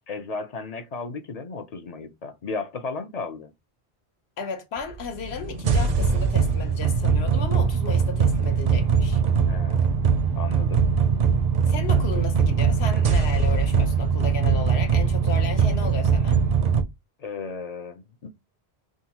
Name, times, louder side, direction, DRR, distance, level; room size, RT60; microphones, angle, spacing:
voice 1, 0.1-3.5 9.5-9.9 10.4-10.8 17.2-18.3, left 4 dB, 50° left, 0.5 m, -34 dB
voice 2, 4.4-9.2 11.7-16.4, left 5 dB, 80° left, 1.2 m, -34 dB
sound 1, 5.0-16.8, right 6 dB, 55° right, 0.5 m, -21 dB
3.7 x 2.2 x 2.8 m
omnidirectional pair, 1.1 m